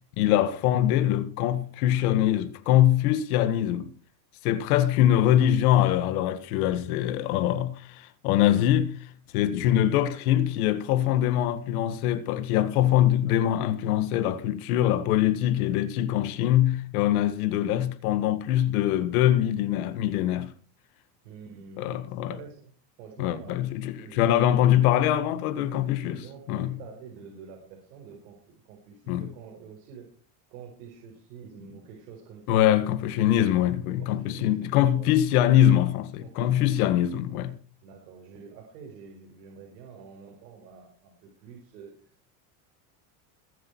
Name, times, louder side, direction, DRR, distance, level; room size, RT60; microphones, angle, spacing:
voice 1, 0.2-3.9 4.4-20.5 21.8-22.4 23.2-26.2 26.5-26.8 29.1-29.2 32.5-37.6, left 12 dB, 65° left, 1.8 m, -23 dB
voice 2, 5.1-5.7 21.2-22.7 23.0-24.6 25.6-30.1 30.5-32.9 34.0-35.1 36.2-37.0 37.8-42.3, right 5 dB, 90° right, 4.9 m, -47 dB
20.5 x 8.4 x 4.7 m
cardioid pair, 170°, 47 cm